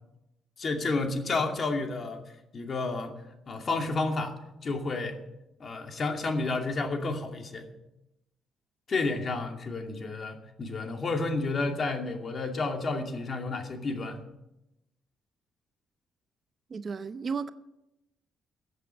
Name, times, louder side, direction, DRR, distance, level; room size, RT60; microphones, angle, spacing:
voice 1, 0.6-2.2 2.5-3.2 3.5-4.3 4.6-5.2 5.6-7.7 8.9-14.2, left 3 dB, 45° left, 3 dB, 2.5 m, -31 dB
voice 2, 16.7-17.5, right 5 dB, 40° right, 12 dB, 0.7 m, -33 dB
15.0 x 8.2 x 7.7 m, 0.91 s
cardioid pair, 90°, 0 cm